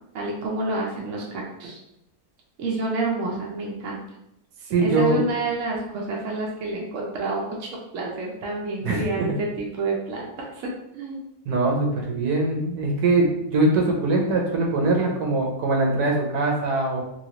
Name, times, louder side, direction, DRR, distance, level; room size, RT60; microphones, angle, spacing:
voice 1, 0.1-1.8 2.6-4.0 4.8-7.7 7.9-11.2, right 2 dB, 65° right, -3 dB, 0.8 m, -29 dB
voice 2, 4.7-5.2 8.8-9.3 11.5-17.0, right 2 dB, 85° right, 1 dB, 1.2 m, -22 dB
3.0 x 2.7 x 2.8 m, 0.84 s
omnidirectional pair, 1.6 m